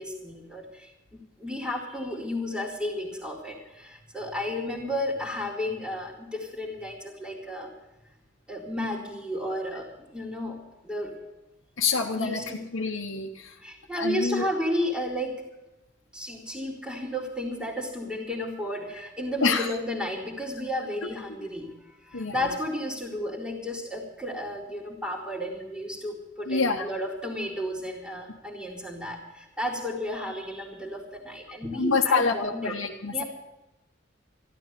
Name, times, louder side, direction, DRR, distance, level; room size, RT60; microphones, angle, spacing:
voice 1, 0.0-7.7 8.5-9.9 10.1-10.6 10.8-11.1 11.9-12.6 13.6-15.4 16.1-21.7 22.0-32.7 33.1-33.2, left 1 dB, 5° right, -3 dB, 2.3 m, -33 dB
voice 2, 11.8-12.4 12.7-13.5 13.9-14.5 19.4-19.7 21.0-21.1 22.1-22.5 26.5-26.9 31.7-33.2, left 4 dB, 85° left, -1 dB, 1.1 m, -27 dB
14.5 x 11.5 x 6.8 m, 0.98 s
head